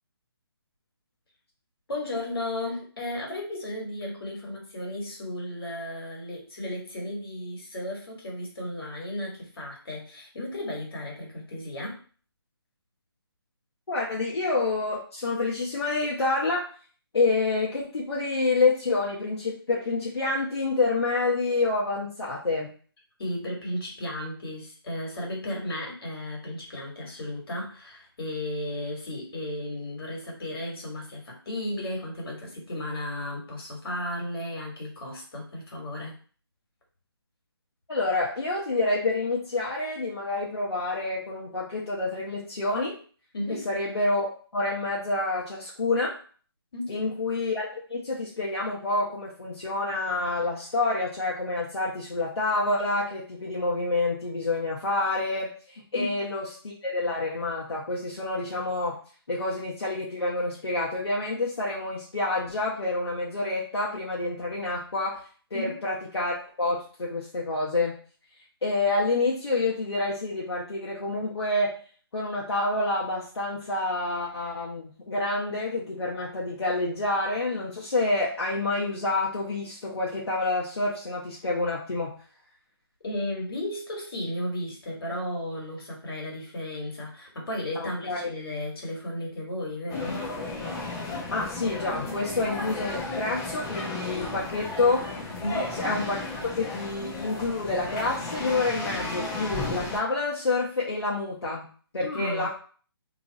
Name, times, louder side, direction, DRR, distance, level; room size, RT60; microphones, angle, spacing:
voice 1, 1.9-12.0 23.2-36.1 43.3-43.7 46.7-47.0 55.9-56.1 65.5-65.7 83.0-90.2 95.4-95.7 102.0-102.5, left 1 dB, 65° left, -1 dB, 1.8 m, -34 dB
voice 2, 13.9-16.6 17.1-22.7 37.9-43.0 43.6-46.1 46.9-59.0 59.3-65.2 65.5-68.0 68.6-71.7 72.1-82.1 87.8-88.3 91.3-95.0 95.7-96.3 96.6-101.7 101.9-102.5, left 2 dB, 85° left, -4 dB, 1.1 m, -28 dB
sound 1, 89.9-100.0, left 2 dB, 15° left, 0.7 m, -34 dB
3.1 x 2.4 x 3.9 m, 0.42 s
hypercardioid pair, 160°, 13 cm